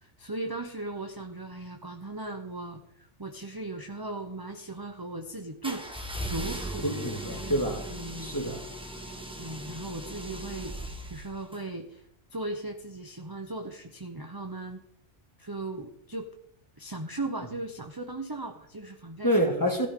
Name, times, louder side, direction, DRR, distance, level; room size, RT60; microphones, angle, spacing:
voice 1, 0.0-5.9 6.3-6.9 7.3-7.6 7.9-8.4 9.4-12.0 12.3-14.8 15.4-16.3 16.8-19.3, right 2 dB, 20° right, 4 dB, 0.9 m, -37 dB
sound 1, 5.6-11.6, right 1 dB, 5° right, 1.3 m, -38 dB
voice 2, 6.8-7.9 8.2-8.6 19.2-19.9, equal, 15° left, 2 dB, 2.0 m, -27 dB
15.0 x 13.5 x 3.8 m, 0.72 s
omnidirectional pair, 1.2 m